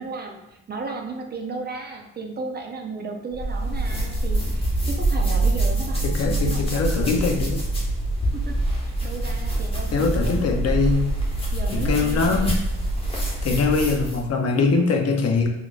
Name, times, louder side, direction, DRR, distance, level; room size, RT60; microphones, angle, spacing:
voice 1, 0.0-7.5 8.3-10.5 11.5-12.6, right 3 dB, 35° right, 2 dB, 0.6 m, -35 dB
sound 1, 3.3-14.3, right 1 dB, 20° left, 1.1 m, -25 dB
voice 2, 6.0-7.6 9.9-11.1 11.7-12.6 13.4-15.5, left 4 dB, 55° left, 3 dB, 0.6 m, -22 dB
4.2 x 3.0 x 2.4 m, 0.92 s
cardioid pair, 90°, 30 cm